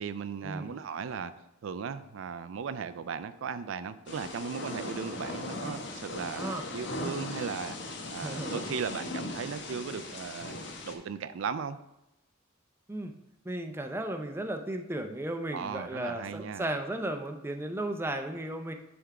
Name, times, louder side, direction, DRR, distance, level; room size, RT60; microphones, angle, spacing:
voice 1, 0.0-1.3 1.6-10.6 10.8-11.8 15.5-16.7, right 6 dB, 75° right, 12 dB, 0.4 m, -37 dB
Thunder / Rain, 4.1-10.9, left 2 dB, 60° left, 1.0 m, -38 dB
voice 2, 8.2-8.6 12.9-13.1 13.4-18.7, right 1 dB, 10° right, 5 dB, 0.5 m, -35 dB
10.0 x 3.5 x 4.7 m, 0.89 s
head